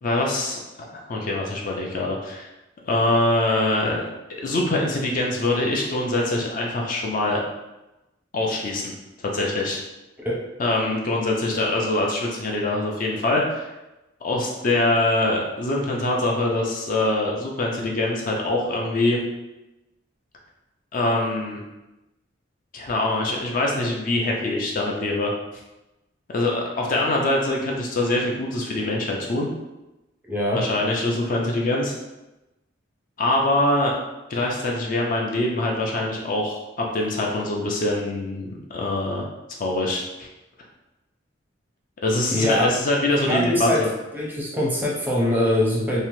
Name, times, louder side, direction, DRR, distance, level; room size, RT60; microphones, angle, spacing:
voice 1, 0.0-0.6 0.9-2.5 2.8-4.1 4.4-7.4 8.3-8.9 9.2-9.8 10.6-13.7 14.2-19.2 20.9-21.6 22.7-25.3 26.3-29.5 30.5-31.9 33.2-34.0 34.3-39.2 39.6-40.3 42.0-43.9, left 2 dB, 45° left, -1 dB, 0.4 m, -24 dB
voice 2, 30.3-30.6 42.3-42.7 43.3-43.8 44.1-46.0, left 1 dB, 10° right, -5 dB, 0.5 m, -22 dB
2.7 x 2.0 x 2.9 m, 0.99 s
head